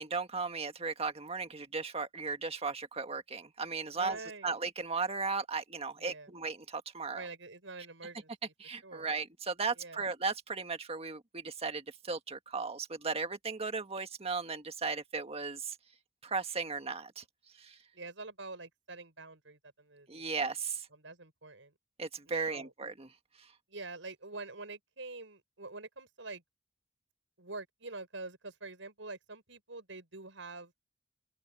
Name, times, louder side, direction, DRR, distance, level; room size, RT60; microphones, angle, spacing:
voice 1, 0.0-7.3 8.6-15.8 16.2-17.2 17.6-17.8 20.1-20.9 22.0-23.1 23.4-23.5, right 4 dB, 35° right, 1.7 m, -36 dB
voice 2, 3.9-4.6 6.0-6.3 7.1-8.5 8.8-9.1 9.8-10.0 17.9-20.3 20.9-21.7 22.3-22.7 23.7-26.4 27.4-30.7, right 3 dB, 80° right, 6.1 m, -46 dB
open air
head